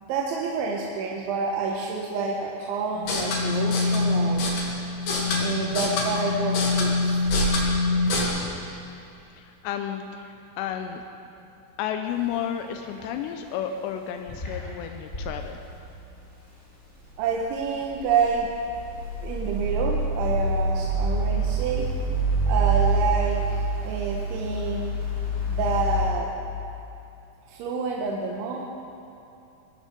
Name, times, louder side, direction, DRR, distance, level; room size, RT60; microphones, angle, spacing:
voice 1, 0.0-4.4 5.4-7.2 17.2-18.5 19.2-21.9 22.5-24.9 25.5-26.3 27.5-28.6, right 5 dB, 75° right, -1 dB, 3.2 m, -28 dB
sound 1, 3.0-8.2, left 2 dB, 55° left, 3.3 m, -24 dB
voice 2, 9.3-11.0 11.8-15.6, left 9 dB, 85° left, 5 dB, 2.5 m, -32 dB
sound 2, 12.1-12.3 12.6-13.3 13.6-13.7 14.3-15.3 17.4-26.1, right 2 dB, 15° left, 2.7 m, -26 dB
20.0 x 14.0 x 5.2 m, 2.7 s
omnidirectional pair, 5.7 m